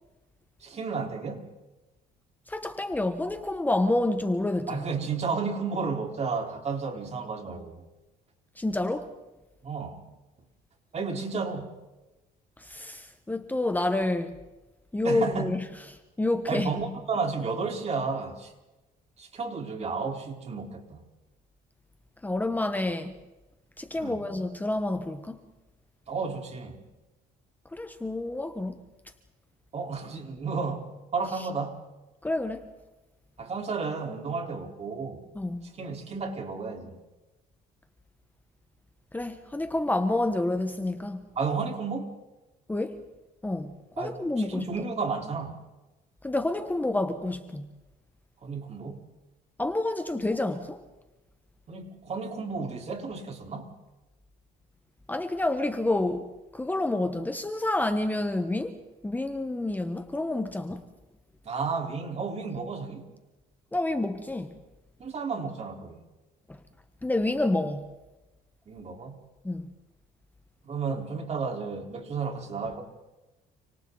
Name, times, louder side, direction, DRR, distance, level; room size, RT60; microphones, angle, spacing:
voice 1, 0.6-1.5 4.7-7.8 9.6-10.0 10.9-11.7 15.0-15.5 16.5-18.5 19.2-21.0 24.0-24.2 26.1-26.8 29.7-31.8 33.4-35.2 35.8-37.0 41.4-42.1 44.0-44.2 44.5-45.6 48.4-49.0 51.7-53.7 61.4-63.1 65.0-66.0 68.7-69.2 70.6-72.8, right 4 dB, 40° right, 4.4 m, -32 dB
voice 2, 2.5-4.9 8.6-9.1 12.6-14.4 14.9-16.7 22.2-23.1 23.8-25.4 27.7-28.8 31.3-31.5 32.2-32.7 35.3-35.7 39.1-41.2 42.7-43.0 43.4-44.7 46.2-47.7 49.6-50.8 55.1-60.8 63.7-64.5 67.0-67.9 69.4-69.7, left 2 dB, 10° left, 1.4 m, -29 dB
29.5 x 27.0 x 4.1 m
cardioid pair, 110°, 17 cm